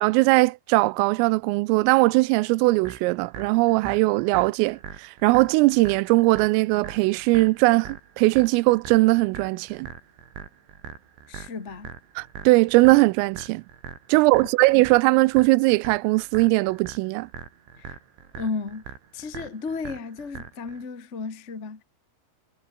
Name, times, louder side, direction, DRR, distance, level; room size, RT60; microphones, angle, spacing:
voice 1, 0.0-9.9 12.2-13.6 14.1-17.3, right 23 dB, 85° right, 3.3 m, -20 dB
sound 1, 2.8-20.8, right 8 dB, 65° right, 6.2 m, -42 dB
voice 2, 11.3-11.9 17.8-18.0 18.3-18.8 19.1-21.8, left 4 dB, 70° left, 0.6 m, -34 dB
omnidirectional pair, 5.8 m